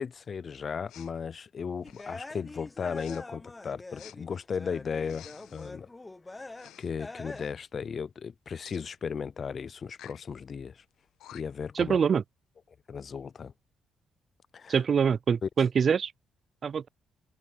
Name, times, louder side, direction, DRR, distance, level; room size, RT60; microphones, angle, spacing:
voice 1, 0.0-5.9 6.8-10.8 11.3-12.0 12.9-13.5 14.5-14.8 15.4-15.5, left 6 dB, 45° left, 0.4 m, -36 dB
Respiratory sounds, 0.9-1.1 1.8-2.2 2.9-3.2 3.9-4.2 5.0-5.7 6.5-6.9 7.2-7.5 8.6-8.8 9.9-10.2 10.9-11.0 11.2-11.7, left 13 dB, 85° left, 1.3 m, -51 dB
sound 1, 1.8-4.3 4.5-6.7 7.0-7.5, left 2 dB, 20° left, 1.0 m, -44 dB
voice 2, 11.7-12.2 14.7-16.1 16.6-16.9, right 6 dB, 50° right, 0.3 m, -24 dB
open air
cardioid pair, 90°, 0 cm